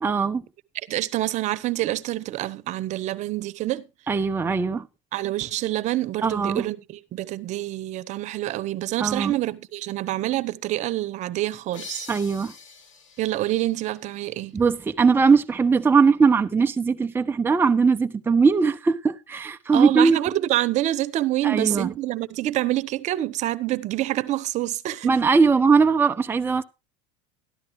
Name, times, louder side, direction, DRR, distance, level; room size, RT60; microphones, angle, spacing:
voice 1, 0.0-0.4 4.1-4.9 6.2-6.7 9.0-9.3 12.1-12.5 14.5-20.2 21.4-21.9 25.0-26.6, right 5 dB, 15° right, 0.7 m, -20 dB
voice 2, 0.9-3.9 5.1-12.1 13.2-14.6 19.7-25.1, right 15 dB, 50° right, 1.0 m, -27 dB
sound 1, 11.7-15.2, left 5 dB, 90° left, 2.6 m, -45 dB
13.5 x 12.0 x 3.1 m
supercardioid pair, 105°, 16 cm